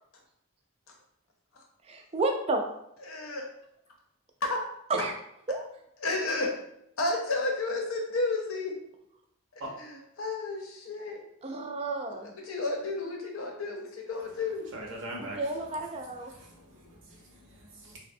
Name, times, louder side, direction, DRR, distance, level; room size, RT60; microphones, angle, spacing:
voice 1, 1.9-2.6 4.9-5.1 5.5-5.6 11.4-12.3 15.2-16.3, right 2 dB, 30° right, 3 dB, 0.3 m, -31 dB
voice 2, 3.0-3.5 4.4-4.6 6.0-6.6 7.0-8.7 9.5-11.2 12.1-14.7, left 2 dB, 80° left, 1 dB, 0.6 m, -32 dB
voice 3, 14.7-15.4 16.3-18.0, right 1 dB, 60° right, -1 dB, 0.7 m, -43 dB
3.2 x 2.1 x 2.6 m, 0.77 s
head